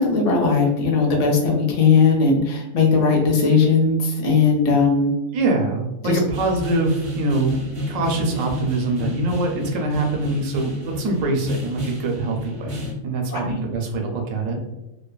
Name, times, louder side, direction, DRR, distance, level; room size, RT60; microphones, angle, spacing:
voice 1, 0.0-5.1 6.0-6.2 13.3-13.6, left 4 dB, 50° left, -1 dB, 0.4 m, -18 dB
voice 2, 5.3-7.6 7.9-14.6, right 2 dB, 85° right, 2 dB, 1.0 m, -24 dB
sound 1, 6.3-12.9, left 2 dB, 50° right, 0.3 m, -31 dB
2.7 x 2.1 x 2.3 m, 0.96 s
omnidirectional pair, 1.3 m